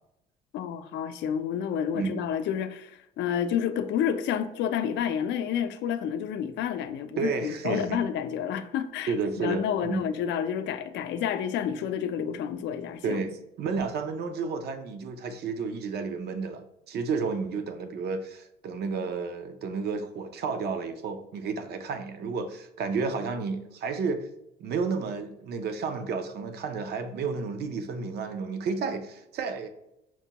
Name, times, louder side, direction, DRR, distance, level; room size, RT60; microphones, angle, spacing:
voice 1, 0.5-13.2, left 8 dB, 70° left, 0.4 m, -30 dB
voice 2, 7.2-8.0 9.1-10.1 13.0-13.3 13.6-24.3 24.6-29.7, right 5 dB, 60° right, 0.6 m, -31 dB
5.8 x 2.2 x 2.8 m
cardioid pair, 100°, 19 cm